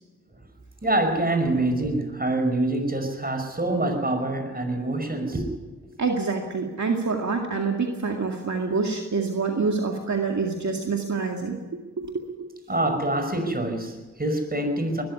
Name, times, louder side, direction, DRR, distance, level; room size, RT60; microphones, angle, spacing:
voice 1, 0.8-5.5 12.7-15.0, right 1 dB, 30° right, 6 dB, 5.6 m, -25 dB
voice 2, 6.0-11.6 12.0-12.5, right 4 dB, 60° right, 2 dB, 2.2 m, -26 dB
20.0 x 13.5 x 9.6 m, 1.3 s
cardioid pair, 40°, 32 cm